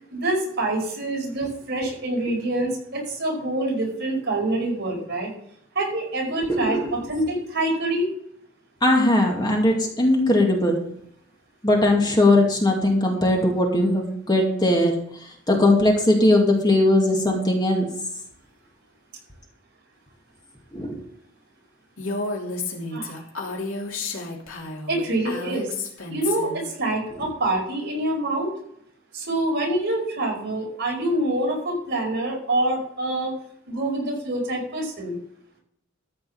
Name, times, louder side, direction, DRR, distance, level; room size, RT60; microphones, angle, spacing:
voice 1, 0.1-5.3 5.7-8.1 22.9-23.2 24.9-25.7 26.1-28.5 29.1-33.3 33.7-35.2, right 1 dB, 55° right, 0 dB, 5.0 m, -26 dB
voice 2, 6.4-6.9 8.8-10.8 11.6-14.9 15.5-17.9 20.7-21.0 27.2-27.3, left 1 dB, 20° left, 0 dB, 2.2 m, -19 dB
Female speech woman speaking, 22.0-26.6, left 3 dB, 75° left, 3.0 m, -31 dB
14.0 x 5.5 x 7.1 m, 0.71 s
head